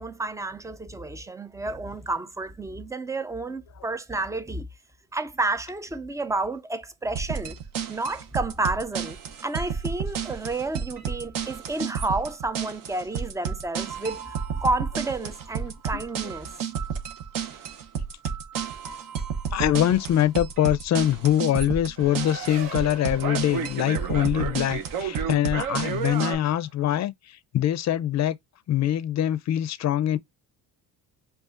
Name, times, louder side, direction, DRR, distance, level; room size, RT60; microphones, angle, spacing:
voice 1, 0.0-4.7 5.1-7.6 7.9-14.4 14.6-16.5, right 2 dB, 10° right, 0.3 m, -30 dB
sound 1, 7.2-26.4, right 7 dB, 55° right, 0.9 m, -31 dB
voice 2, 19.5-28.4 28.7-30.2, left 11 dB, 45° left, 0.5 m, -24 dB
Race car auto racing, 22.0-26.9, right 4 dB, 85° right, 1.2 m, -42 dB
5.4 x 2.4 x 2.5 m
cardioid pair, 100°, 39 cm